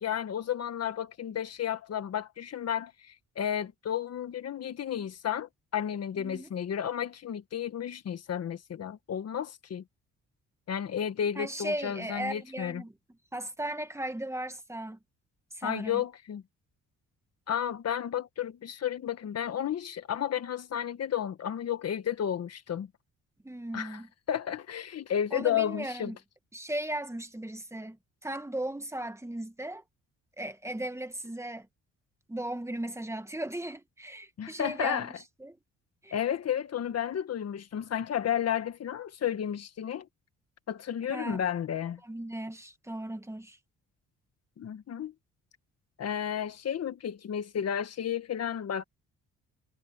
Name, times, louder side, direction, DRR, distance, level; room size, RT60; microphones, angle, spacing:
voice 1, 0.0-9.8 10.7-12.8 15.6-16.4 17.5-22.9 23.7-24.0 24.3-26.1 34.4-35.1 36.1-40.1 40.7-42.0 44.6-45.1 46.0-48.8, left 9 dB, 55° left, 1.6 m, -32 dB
voice 2, 6.2-6.5 11.4-12.9 13.3-15.0 15.5-16.0 23.4-24.1 25.3-26.2 26.5-29.8 30.4-31.7 32.3-35.1 35.4-35.6 36.0-36.1 41.1-41.4 42.0-43.6, right 1 dB, 10° right, 2.0 m, -37 dB
cardioid pair, 90°, 30 cm